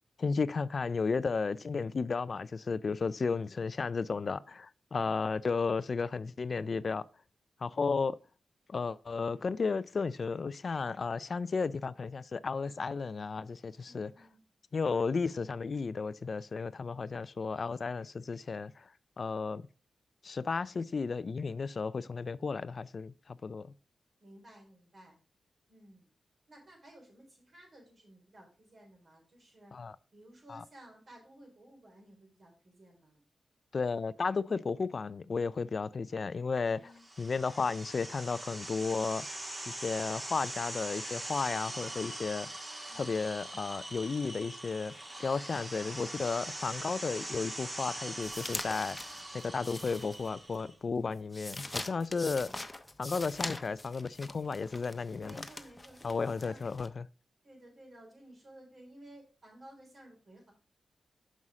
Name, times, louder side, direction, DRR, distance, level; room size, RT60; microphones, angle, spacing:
voice 1, 0.2-7.0 7.6-8.2 8.7-14.1 14.7-18.9 19.2-19.7 20.2-23.7 29.7-30.0 30.5-30.6 33.7-36.9 37.2-39.3 39.7-42.5 43.0-44.9 45.2-52.5 53.0-55.4 56.0-57.1, left 4 dB, 55° left, 0.3 m, -33 dB
voice 2, 13.8-14.4 24.2-25.2 25.7-26.1 26.5-29.7 30.1-33.2 36.6-37.1 42.9-43.1 54.8-56.7 57.4-60.5, right 1 dB, 55° right, 3.8 m, -55 dB
sound 1, 37.0-50.7, right 1 dB, 30° right, 1.9 m, -42 dB
sound 2, 48.2-50.6 50.9-56.9, left 2 dB, 20° left, 0.8 m, -43 dB
6.2 x 5.5 x 4.8 m
cardioid pair, 65°, 0 cm